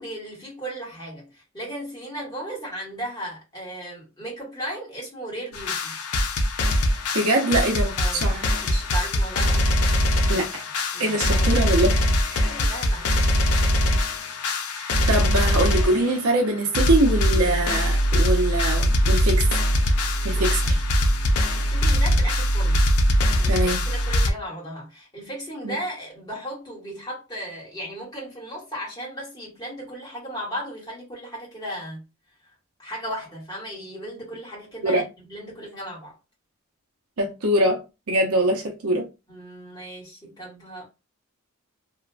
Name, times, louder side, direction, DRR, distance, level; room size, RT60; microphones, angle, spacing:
voice 1, 0.0-6.0 8.0-8.3 8.6-9.7 10.9-11.7 12.4-13.2 20.3-20.7 21.5-22.8 23.2-32.0 32.8-36.1 39.3-40.9, equal, 20° left, 1.5 m, -36 dB
sound 1, 5.5-16.2 16.5-16.6 16.7-24.3, left 1 dB, 80° left, 0.5 m, -22 dB
voice 2, 7.1-8.5 10.3-10.6 11.0-12.0 12.3-12.4 14.8-19.5 20.2-20.6 23.5-23.8 25.6-25.7 34.8-35.0 37.2-37.8 38.1-39.1, right 1 dB, 85° right, 0.7 m, -23 dB
2.9 x 2.4 x 2.3 m
head